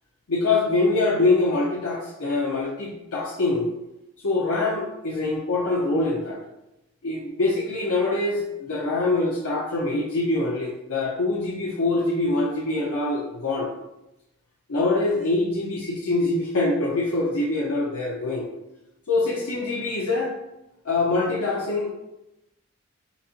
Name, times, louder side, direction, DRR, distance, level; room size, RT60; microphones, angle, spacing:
voice 1, 0.3-3.7 4.2-6.4 7.0-13.7 14.7-18.5 19.1-20.3 20.8-21.9, left 2 dB, 80° left, -4 dB, 0.7 m, -24 dB
4.1 x 4.1 x 2.5 m, 0.93 s
head